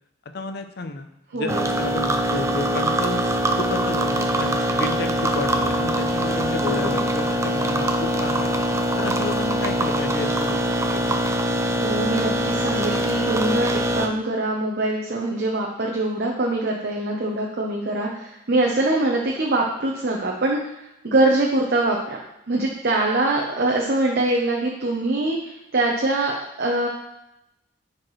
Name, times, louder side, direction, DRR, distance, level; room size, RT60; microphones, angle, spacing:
voice 1, 0.3-1.1 1.3-3.3 3.6-8.7 9.0-11.3, left 3 dB, 55° left, 8 dB, 0.6 m, -32 dB
voice 2, 1.3-1.6 6.6-7.0 11.8-20.8 21.0-22.2 22.5-26.9, right 2 dB, 55° right, -2 dB, 0.8 m, -23 dB
sound 1, 1.5-14.1, right 1 dB, 15° right, 0.5 m, -23 dB
10.0 x 4.4 x 3.2 m, 0.88 s
head